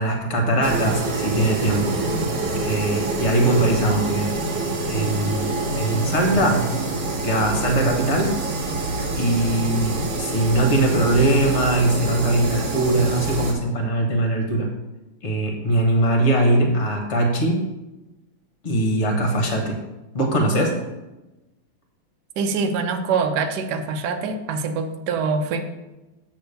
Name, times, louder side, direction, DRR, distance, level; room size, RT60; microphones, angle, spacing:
voice 1, 0.0-2.0 2.6-4.4 4.8-6.8 7.2-8.4 9.2-14.7 15.2-17.6 18.6-19.8 20.1-20.8, right 1 dB, 40° left, 2 dB, 1.3 m, -21 dB
sound 1, 0.6-13.5, right 2 dB, 50° right, 1.7 m, -26 dB
voice 2, 22.4-25.6, right 5 dB, 70° right, 6 dB, 1.0 m, -24 dB
8.3 x 3.5 x 6.7 m, 1.0 s
omnidirectional pair, 2.4 m